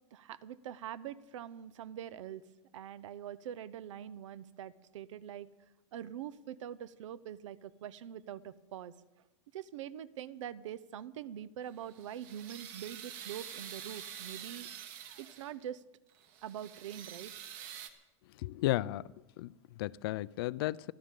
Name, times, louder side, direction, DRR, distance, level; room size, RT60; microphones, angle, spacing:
voice 1, 0.1-2.4 2.7-5.5 5.9-8.9 9.5-14.7 15.2-15.8 16.4-17.3, right 10 dB, 90° right, 0.8 m, -44 dB
sound 1, 11.7-15.6 16.1-17.9, right 9 dB, 40° right, 1.3 m, -47 dB
voice 2, 18.4-19.0 19.4-20.9, left 16 dB, 50° left, 0.4 m, -34 dB
29.0 x 11.5 x 3.8 m
supercardioid pair, 170°, 15 cm